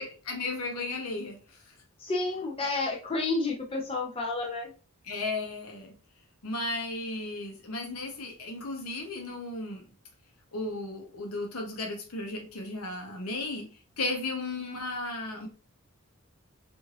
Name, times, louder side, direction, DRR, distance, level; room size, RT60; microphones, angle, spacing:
voice 1, 0.0-1.6 5.1-5.9 6.4-9.9 10.5-13.7 14.0-15.5, left 2 dB, 80° left, 0.8 m, -35 dB
voice 2, 2.0-4.7, left 3 dB, 25° left, 0.6 m, -30 dB
2.6 x 2.4 x 3.2 m
head